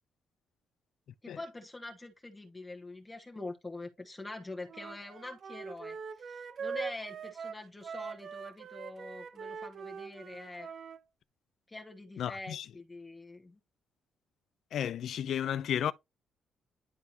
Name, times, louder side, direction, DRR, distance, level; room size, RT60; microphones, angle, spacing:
voice 1, 1.2-10.7 11.7-13.6, left 2 dB, 20° left, 1.3 m, -45 dB
Wind instrument woodwind instrument, 4.7-11.0, right 6 dB, 55° right, 0.7 m, -42 dB
voice 2, 12.2-12.7 14.7-15.9, left 9 dB, 70° left, 0.4 m, -33 dB
11.0 x 3.7 x 2.8 m
cardioid pair, 90°, 0 cm